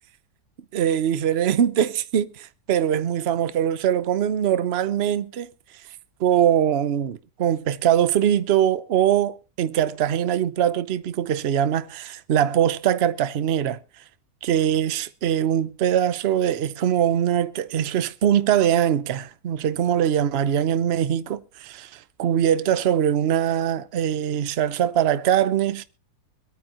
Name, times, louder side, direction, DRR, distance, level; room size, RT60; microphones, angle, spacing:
voice 1, 0.7-5.5 6.2-13.8 14.4-21.9 22.2-25.8, right 10 dB, 50° right, 0.8 m, -22 dB
24.5 x 9.4 x 2.9 m
omnidirectional pair, 1.8 m